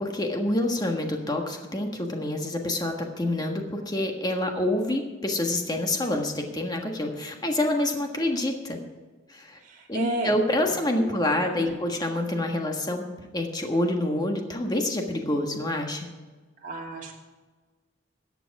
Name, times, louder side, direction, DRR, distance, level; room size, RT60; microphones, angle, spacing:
voice 1, 0.0-8.8 9.3-9.6 9.9-16.1, left 1 dB, 20° left, 3 dB, 1.5 m, -27 dB
voice 2, 9.6-11.7 16.6-17.2, right 2 dB, 45° right, -2 dB, 2.7 m, -34 dB
14.0 x 9.0 x 4.8 m, 1.3 s
head